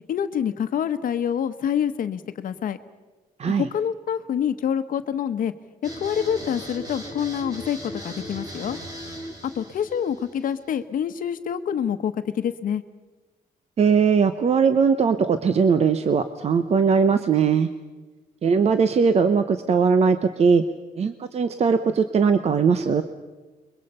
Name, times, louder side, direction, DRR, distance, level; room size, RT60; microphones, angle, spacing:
voice 1, 0.1-2.8 3.5-5.5 6.0-8.8 9.4-12.8, left 8 dB, 65° left, 10 dB, 1.0 m, -26 dB
sound 1, 5.8-10.8, equal, 25° right, 3.7 m, -38 dB
voice 2, 13.8-17.7 18.4-20.6 21.0-23.0, right 6 dB, 45° right, 10 dB, 0.9 m, -20 dB
28.5 x 22.5 x 5.5 m, 1.2 s
wide cardioid pair, 150°, 15 cm